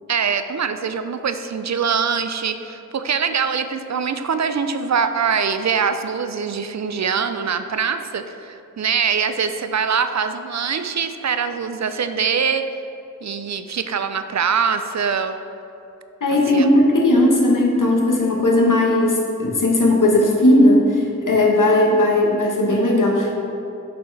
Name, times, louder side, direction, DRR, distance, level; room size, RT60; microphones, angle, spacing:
voice 1, 0.1-12.7 13.2-15.4 16.5-16.7, right 6 dB, 60° right, 9 dB, 0.4 m, -23 dB
voice 2, 16.2-23.4, left 1 dB, 75° left, -1 dB, 1.1 m, -17 dB
6.8 x 5.7 x 3.2 m, 2.8 s
wide cardioid pair, 45°, 32 cm